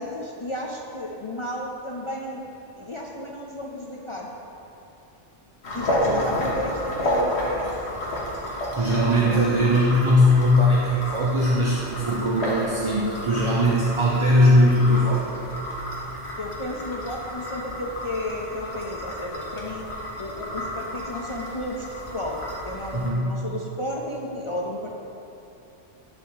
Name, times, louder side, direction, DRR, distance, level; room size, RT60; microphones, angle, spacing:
voice 1, 0.0-2.4 2.8-4.3 5.7-7.7 9.1-9.6 16.4-19.9 20.2-24.9, left 1 dB, 50° left, -2 dB, 0.3 m, -32 dB
sound 1, 5.6-23.1, left 1 dB, 65° left, 1.4 m, -31 dB
voice 2, 8.7-15.3 22.9-23.4, left 1 dB, 35° right, -5 dB, 0.5 m, -20 dB
10.5 x 3.5 x 4.7 m, 2.9 s
omnidirectional pair, 1.2 m